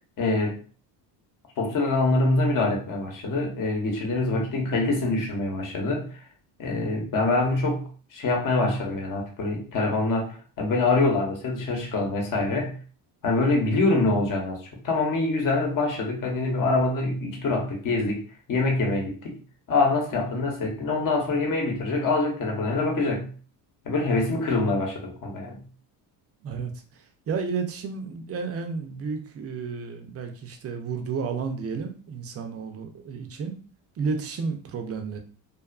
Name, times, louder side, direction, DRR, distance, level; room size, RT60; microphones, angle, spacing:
voice 1, 0.2-0.5 1.6-6.1 6.6-12.7 13.2-18.2 18.5-19.4 19.7-23.3 23.8-25.6, left 2 dB, 45° left, 1 dB, 1.0 m, -25 dB
voice 2, 26.4-33.6 34.0-35.2, right 5 dB, 30° right, 5 dB, 0.5 m, -32 dB
2.5 x 2.4 x 2.3 m, 0.39 s
supercardioid pair, 85°, 46 cm